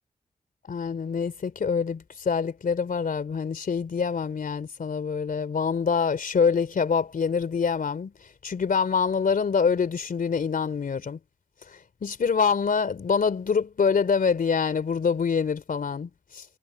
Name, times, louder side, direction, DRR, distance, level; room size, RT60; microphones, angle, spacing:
voice 1, 0.6-8.1 8.4-11.2 11.7-16.4, left 6 dB, 70° left, 3.2 m, -25 dB
wide cardioid pair, 95°, 15 cm